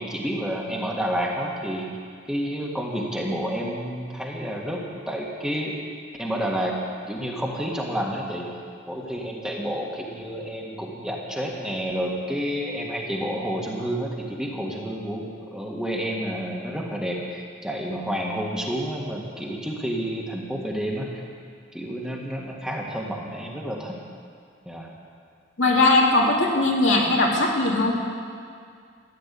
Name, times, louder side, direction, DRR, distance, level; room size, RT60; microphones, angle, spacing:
voice 1, 0.0-1.9 2.3-5.8 6.2-6.8 7.1-8.5 8.9-21.2 21.7-24.0 24.6-24.9, equal, 5° right, -2 dB, 1.6 m, -29 dB
voice 2, 25.6-28.0, left 2 dB, 85° left, -2 dB, 2.5 m, -19 dB
14.5 x 10.0 x 8.4 m, 2.1 s
head